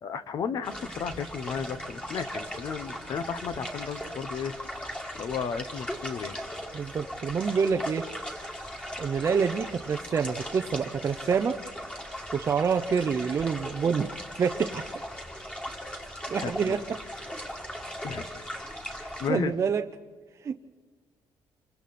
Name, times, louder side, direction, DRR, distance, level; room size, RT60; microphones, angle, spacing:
voice 1, 0.0-6.4 16.4-16.8 18.0-18.4 19.0-19.5, left 6 dB, 50° left, 12 dB, 1.1 m, -34 dB
sound 1, 0.6-19.3, equal, 10° left, 2.5 m, -38 dB
voice 2, 6.7-8.0 9.0-11.6 12.3-14.1 14.4-14.8 16.3-16.8 19.3-19.8 20.4-20.5, right 6 dB, 35° right, 5 dB, 0.7 m, -27 dB
28.5 x 24.5 x 4.3 m, 1.4 s
cardioid pair, 155°, 8 cm